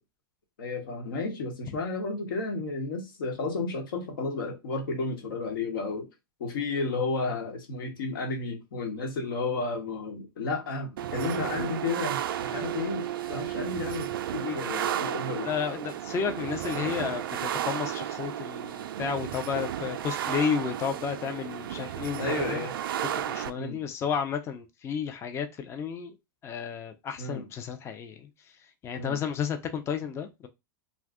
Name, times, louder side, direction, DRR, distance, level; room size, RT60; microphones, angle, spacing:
voice 1, 0.6-6.1 6.4-15.5 22.2-22.7 23.6-23.8 27.2-27.5 29.0-29.2, left 3 dB, 75° left, 1.2 m, -32 dB
sound 1, 11.0-23.5, right 11 dB, 80° right, 0.4 m, -33 dB
voice 2, 15.4-22.6 23.3-26.2 26.4-28.3 28.8-30.5, left 7 dB, 25° left, 0.5 m, -32 dB
2.6 x 2.3 x 3.5 m
hypercardioid pair, 130°, 12 cm